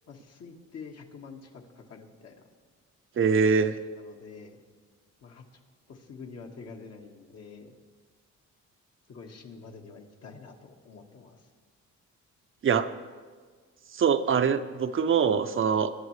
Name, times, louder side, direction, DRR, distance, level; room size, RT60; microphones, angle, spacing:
voice 1, 0.1-2.4 3.6-4.6 5.2-5.4 5.9-7.8 9.1-11.5, left 5 dB, 55° left, 2 dB, 1.6 m, -47 dB
voice 2, 3.2-3.8 12.6-12.9 13.9-15.9, right 6 dB, 45° right, 9 dB, 0.7 m, -23 dB
21.5 x 10.0 x 3.2 m, 1.5 s
cardioid pair, 90°, 30 cm